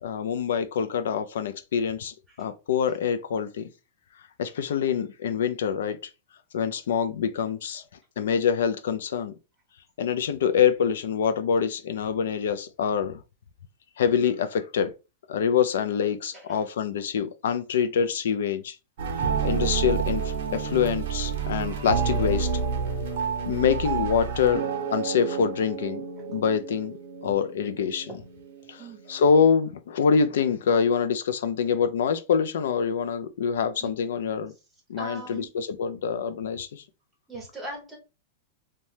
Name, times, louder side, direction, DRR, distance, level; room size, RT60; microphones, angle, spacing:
voice 1, 0.0-3.7 4.4-6.0 6.5-7.8 8.2-9.3 10.0-13.2 14.0-14.9 15.3-18.8 19.4-22.5 23.5-24.6 24.9-26.0 26.3-27.0 27.2-28.1 28.7-34.5 34.9-36.8, left 7 dB, 75° left, 0.3 m, -25 dB
sound 1, 19.0-29.4, right 6 dB, 55° right, 0.7 m, -30 dB
voice 2, 28.8-29.1 33.8-33.9 35.0-35.5 37.3-38.0, right 2 dB, 5° right, 0.7 m, -40 dB
2.7 x 2.1 x 3.1 m
supercardioid pair, 180°, 0 cm